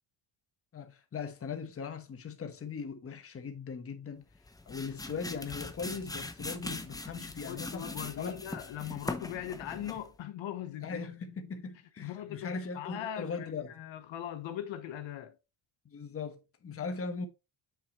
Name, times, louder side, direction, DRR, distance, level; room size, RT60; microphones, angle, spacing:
voice 1, 0.7-4.3 4.7-7.9 8.2-8.4 10.8-13.8 15.8-17.3, left 5 dB, 30° left, 1.2 m, -39 dB
sound 1, 4.3-10.1, left 2 dB, 10° left, 0.6 m, -41 dB
voice 2, 7.5-11.0 12.0-15.4, left 11 dB, 65° left, 1.0 m, -40 dB
7.7 x 6.3 x 3.0 m
cardioid pair, 160°, 49 cm